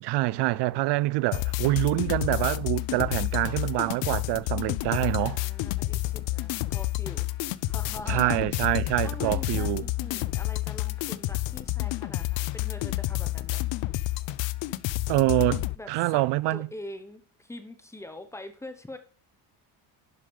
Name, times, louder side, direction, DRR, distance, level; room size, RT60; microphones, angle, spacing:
voice 1, 0.0-5.4 8.1-9.8 15.1-16.7, right 19 dB, 60° right, 0.5 m, -26 dB
sound 1, 1.3-15.8, left 18 dB, 65° left, 0.6 m, -30 dB
voice 2, 5.2-7.3 7.6-8.4 8.7-13.7 15.7-16.2 16.5-19.0, left 1 dB, 5° left, 0.9 m, -43 dB
11.0 x 5.0 x 5.3 m
cardioid pair, 145°, 49 cm